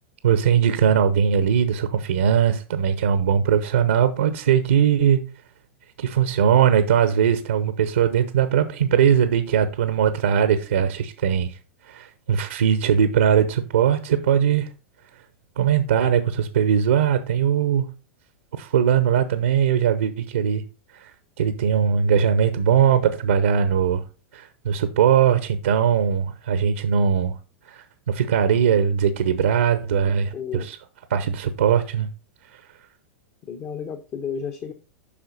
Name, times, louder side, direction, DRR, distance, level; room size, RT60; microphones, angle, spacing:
voice 1, 0.2-5.2 6.0-11.5 11.9-14.7 15.6-17.8 18.6-20.6 21.0-21.1 21.4-24.0 24.3-27.3 27.7-30.8 31.1-32.1, right 8 dB, 70° right, 0.9 m, -20 dB
voice 2, 30.3-30.7 33.5-34.7, left 7 dB, 35° left, 1.1 m, -32 dB
8.6 x 5.7 x 4.1 m
figure-of-eight pair, 95°, 7 cm